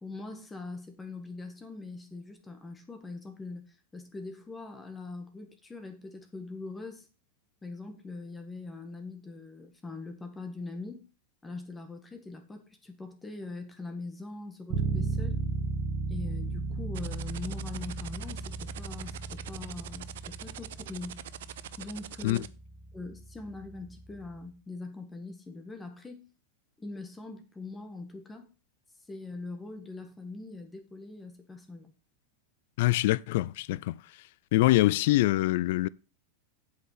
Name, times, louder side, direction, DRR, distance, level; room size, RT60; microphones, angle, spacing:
voice 1, 0.0-7.1 7.6-11.0 11.4-15.4 16.1-21.2 21.8-22.4 22.9-26.3 26.8-28.5 29.1-31.9, left 3 dB, 10° left, 1.6 m, -42 dB
Bass guitar, 14.7-24.4, right 4 dB, 40° right, 1.6 m, -36 dB
sound 1, 16.9-22.5, right 13 dB, 75° right, 0.5 m, -43 dB
voice 2, 32.8-34.0 34.5-35.9, left 17 dB, 65° left, 0.4 m, -24 dB
7.9 x 5.8 x 5.7 m
hypercardioid pair, 125°, 0 cm